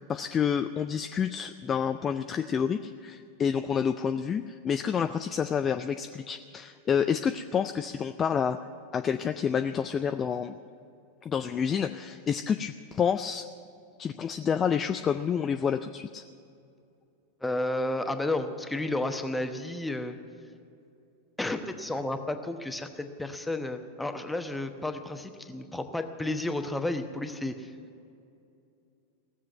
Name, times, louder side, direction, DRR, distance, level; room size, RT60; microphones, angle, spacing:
voice 1, 0.1-8.7 8.9-10.5 11.2-13.5 14.0-16.2, left 7 dB, 25° left, 8 dB, 0.4 m, -29 dB
voice 2, 17.4-20.2 21.4-27.7, left 2 dB, 5° left, 7 dB, 1.0 m, -32 dB
17.0 x 7.5 x 9.4 m, 2.5 s
figure-of-eight pair, 90°, 0 cm